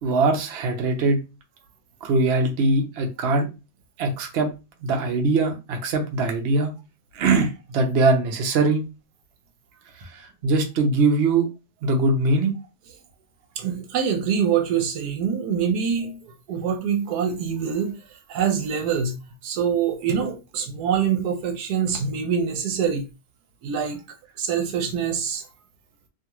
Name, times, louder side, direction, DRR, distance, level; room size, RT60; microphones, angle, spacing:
voice 1, 0.0-1.2 2.0-3.5 4.0-4.5 4.8-6.7 7.1-8.8 10.0-11.5 11.8-12.5, right 3 dB, 60° right, 0.7 m, -21 dB
voice 2, 13.6-18.0 18.3-19.2 19.4-23.0 23.6-24.0 24.4-25.5, right 7 dB, 80° right, 1.2 m, -25 dB
2.7 x 2.4 x 2.9 m
omnidirectional pair, 1.7 m